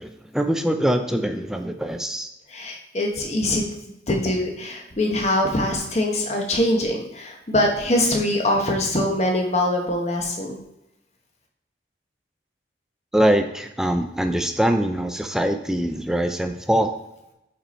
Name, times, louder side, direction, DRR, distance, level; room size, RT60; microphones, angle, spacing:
voice 1, 0.0-2.3 13.1-16.9, right 1 dB, 5° right, 6 dB, 0.3 m, -23 dB
voice 2, 2.5-3.6 4.1-10.6, left 1 dB, 40° left, 1 dB, 1.0 m, -23 dB
5.3 x 4.3 x 4.3 m, 0.89 s
head